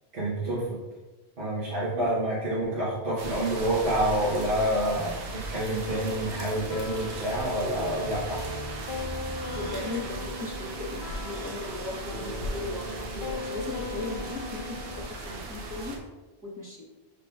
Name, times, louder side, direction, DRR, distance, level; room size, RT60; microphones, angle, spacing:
voice 1, 0.1-0.7 1.4-8.4, right 1 dB, 65° right, -8 dB, 1.4 m, -28 dB
sound 1, 3.2-16.0, right 2 dB, 80° right, 1.0 m, -37 dB
sound 2, 5.9-15.1, left 2 dB, 55° left, 0.7 m, -39 dB
voice 2, 9.5-16.0 16.4-16.9, left 2 dB, 20° right, -4 dB, 0.8 m, -37 dB
5.5 x 3.7 x 2.4 m, 1.2 s
omnidirectional pair, 1.1 m